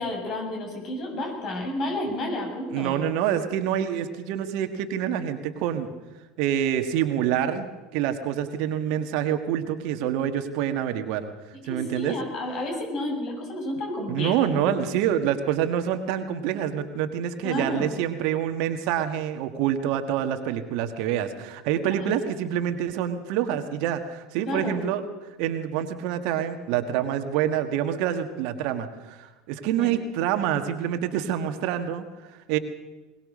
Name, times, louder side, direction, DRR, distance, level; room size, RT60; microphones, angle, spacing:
voice 1, 0.0-3.0 11.7-14.8 17.4-17.9 21.9-22.1 24.5-24.8 29.8-30.0, left 1 dB, 45° left, 2 dB, 7.9 m, -31 dB
voice 2, 2.7-5.9 6.4-11.3 11.7-12.2 14.1-25.0 25.4-32.1 32.5-32.6, right 10 dB, 60° right, 8 dB, 1.6 m, -26 dB
22.0 x 20.0 x 6.5 m, 1.1 s
figure-of-eight pair, 75°, 0 cm